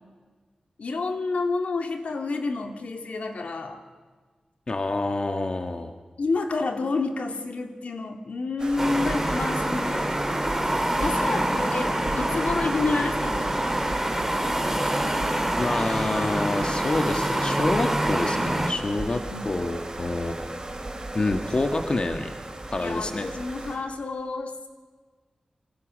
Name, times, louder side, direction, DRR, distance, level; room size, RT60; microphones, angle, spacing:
voice 1, 0.8-3.8 6.2-10.1 11.0-13.7 19.3-19.4 22.8-24.7, left 3 dB, 80° left, 5 dB, 2.3 m, -29 dB
voice 2, 4.7-5.9 15.6-20.3 21.1-22.3 22.7-23.3, left 2 dB, 45° left, 5 dB, 1.5 m, -27 dB
sound 1, 8.6-23.8, right 2 dB, 35° right, 5.3 m, -36 dB
sound 2, 8.8-18.7, right 1 dB, 10° right, 3.3 m, -26 dB
26.5 x 24.0 x 6.3 m, 1.4 s
wide cardioid pair, 80°, 2 cm